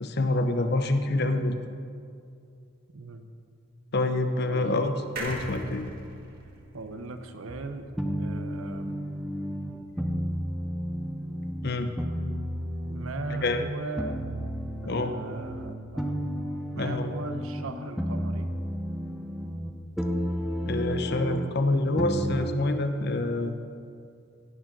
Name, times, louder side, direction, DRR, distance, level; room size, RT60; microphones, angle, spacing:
voice 1, 0.0-1.6 3.9-4.9 5.2-5.8 11.6-11.9 13.4-13.6 14.8-15.1 16.8-17.0 20.7-23.5, left 2 dB, 50° left, 8 dB, 0.7 m, -26 dB
voice 2, 4.5-4.8 6.7-7.9 8.2-9.0 12.9-14.3 14.8-16.1 16.7-18.5, right 3 dB, 80° right, 7 dB, 0.9 m, -38 dB
sound 1, 5.2-8.6 9.0-9.1 9.3-9.4, right 1 dB, 45° right, 1.7 m, -40 dB
sound 2, 7.5-11.7 12.0-13.7 14.0-17.7 18.0-19.7 20.0-21.5 22.0-22.6, equal, ahead, 0.7 m, -32 dB
16.5 x 6.4 x 6.1 m, 2.4 s
head